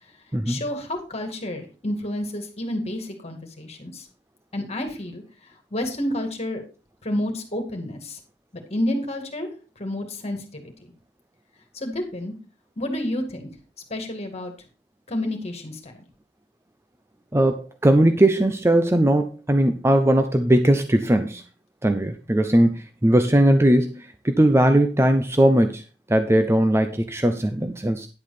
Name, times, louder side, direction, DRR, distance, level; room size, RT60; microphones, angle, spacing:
voice 1, 0.5-4.1 4.5-5.2 5.7-6.6 7.0-8.2 8.5-9.5 9.8-10.9 11.7-12.3 12.8-13.5 13.9-14.5 15.1-15.9, left 1 dB, 35° left, 4 dB, 2.2 m, -30 dB
voice 2, 17.8-21.4 21.8-25.8 26.1-28.1, right 1 dB, 15° right, 8 dB, 0.6 m, -19 dB
10.5 x 7.8 x 4.1 m, 0.33 s
head